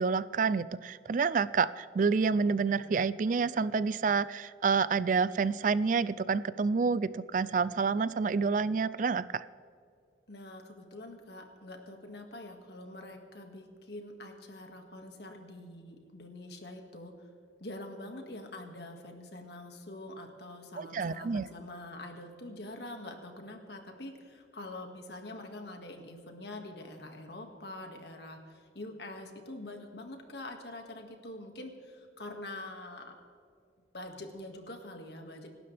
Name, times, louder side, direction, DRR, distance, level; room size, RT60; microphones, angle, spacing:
voice 1, 0.0-9.5 20.8-21.5, right 5 dB, 45° right, 17 dB, 0.3 m, -28 dB
voice 2, 10.3-17.1 17.6-33.2 33.9-35.5, left 1 dB, 60° left, 4 dB, 2.0 m, -45 dB
27.5 x 12.5 x 3.4 m, 2.3 s
head